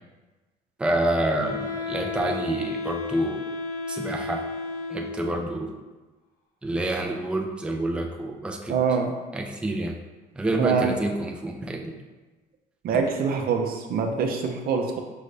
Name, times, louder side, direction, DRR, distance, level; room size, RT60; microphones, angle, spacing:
voice 1, 0.8-3.4 3.9-4.4 4.9-5.8 6.6-8.8 9.3-10.0 10.4-11.9, right 1 dB, 5° right, 1 dB, 0.5 m, -28 dB
Wind instrument woodwind instrument, 1.4-5.5, left 4 dB, 60° left, 0.9 m, -33 dB
voice 2, 8.7-9.1 10.6-10.9 12.8-15.0, right 6 dB, 65° right, 3 dB, 0.6 m, -24 dB
5.5 x 2.6 x 3.2 m, 1.2 s
cardioid pair, 110°, 17 cm